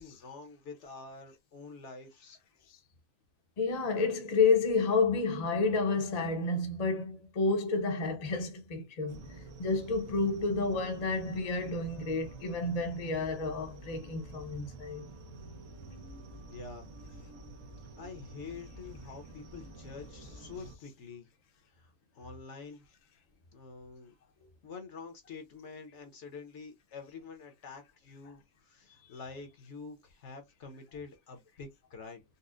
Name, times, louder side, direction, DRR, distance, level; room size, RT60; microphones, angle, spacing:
voice 1, 0.0-2.4 16.5-16.9 18.0-21.3 21.8-21.9 22.1-22.8 23.5-24.1 24.6-32.2, left 4 dB, 60° left, 1.1 m, -47 dB
voice 2, 3.6-15.1 29.0-29.2, left 3 dB, 35° left, 0.7 m, -30 dB
sound 1, 9.1-20.8, right 2 dB, 80° right, 1.2 m, -49 dB
4.1 x 2.1 x 2.4 m
omnidirectional pair, 1.5 m